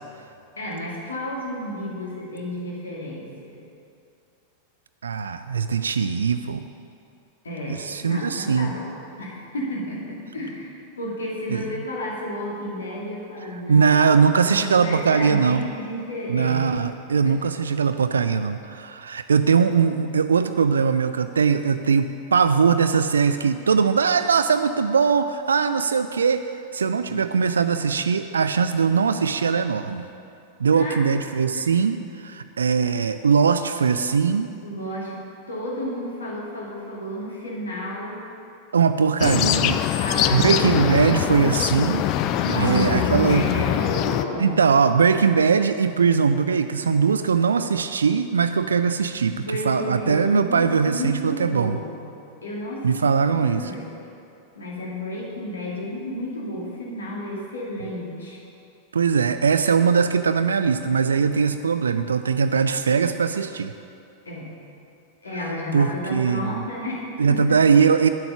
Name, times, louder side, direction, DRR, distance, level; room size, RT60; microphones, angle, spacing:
voice 1, 0.6-3.5 7.4-8.9 9.2-13.9 14.4-16.7 17.2-17.3 30.7-31.0 31.5-31.7 34.6-35.2 35.5-38.2 40.0-41.1 42.4-44.6 49.3-52.0 52.4-53.0 53.2-53.9 54.6-58.4 64.3-64.5 65.2-67.6, left 1 dB, 70° left, -4 dB, 2.3 m, -31 dB
voice 2, 5.0-6.6 7.7-8.7 11.5-11.6 13.7-15.6 16.3-26.5 26.7-30.1 30.6-34.5 38.7-39.8 40.3-42.0 42.5-43.5 44.4-51.8 52.8-53.7 58.9-63.7 65.7-66.7 67.2-68.1, right 6 dB, 70° right, 9 dB, 0.3 m, -20 dB
sound 1, 39.2-44.2, left 11 dB, 40° left, 0.4 m, -23 dB
9.7 x 7.7 x 5.7 m, 2.5 s
figure-of-eight pair, 90°, 0 cm